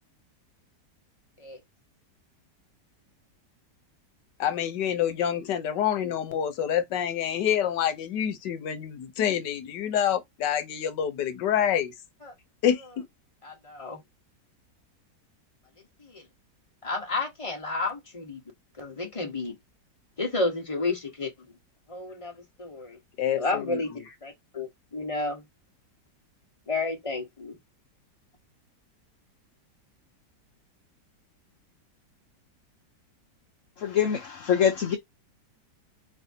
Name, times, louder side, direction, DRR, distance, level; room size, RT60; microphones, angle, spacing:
voice 1, 4.4-11.9 12.6-13.0 23.2-23.8, left 9 dB, 80° left, 1.4 m, -27 dB
voice 2, 13.4-14.0 15.8-16.3 16.8-18.4 18.8-19.5 20.2-21.3 21.9-23.0 23.3-25.4 26.7-27.6, left 3 dB, 20° left, 1.2 m, -31 dB
voice 3, 33.8-35.0, left 8 dB, 60° left, 0.9 m, -24 dB
4.2 x 3.4 x 2.7 m
omnidirectional pair, 1.9 m